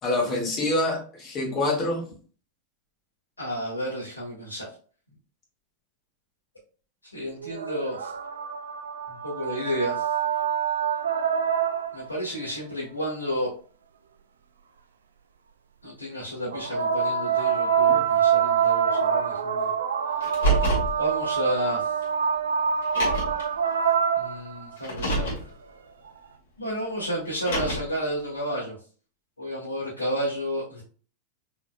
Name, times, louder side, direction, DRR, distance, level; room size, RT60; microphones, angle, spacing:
voice 1, 0.0-2.0 17.9-18.0, left 2 dB, 30° left, -1 dB, 1.9 m, -26 dB
voice 2, 3.4-4.7 7.1-8.1 9.1-10.1 11.9-13.5 15.8-19.7 21.0-21.9 24.2-25.3 26.6-28.8 29.4-30.8, equal, 75° left, -8 dB, 1.8 m, -31 dB
sound 1, 7.4-12.2 16.5-24.8 26.1-26.2, right 7 dB, 65° right, 0.5 m, -25 dB
Car, 20.2-20.9 22.0-22.1 22.8-23.4 24.8-25.4 27.3-28.0, right 2 dB, 60° left, 2.2 m, -26 dB
5.7 x 4.0 x 2.2 m, 0.41 s
figure-of-eight pair, 90°, 0 cm